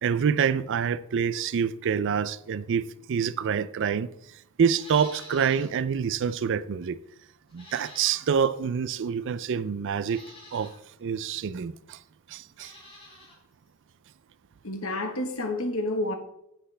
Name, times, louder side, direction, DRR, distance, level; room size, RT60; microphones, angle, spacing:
voice 1, 0.0-7.0 7.5-10.2 10.5-10.7 11.0-12.0 12.3-12.8, right 7 dB, 55° right, 0.4 m, -27 dB
Livestock farm animals working animals, 4.7-5.8 6.1-6.2 7.5-8.5 9.3-9.4 10.0-10.8 12.5-13.4 13.7-13.8, left 1 dB, 25° left, 3.7 m, -48 dB
voice 2, 14.6-16.1, left 1 dB, 65° left, 1.3 m, -29 dB
10.0 x 7.7 x 3.3 m
head